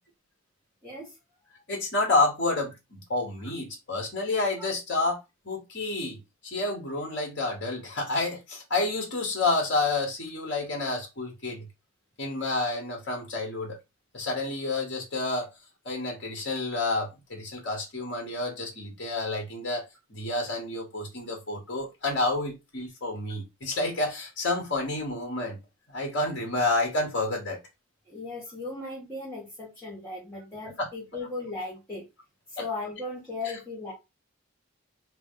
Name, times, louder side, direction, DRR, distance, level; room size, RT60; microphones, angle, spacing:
voice 1, 0.8-1.1 28.1-32.0 32.5-33.9, left 3 dB, 5° left, 1.4 m, -37 dB
voice 2, 1.7-5.2 5.4-6.2 6.4-11.7 12.2-13.8 14.1-15.5 15.8-19.8 20.1-25.6 25.9-27.6 30.8-30.9 32.6-32.7, left 2 dB, 50° left, 1.2 m, -29 dB
3.0 x 3.0 x 3.6 m
head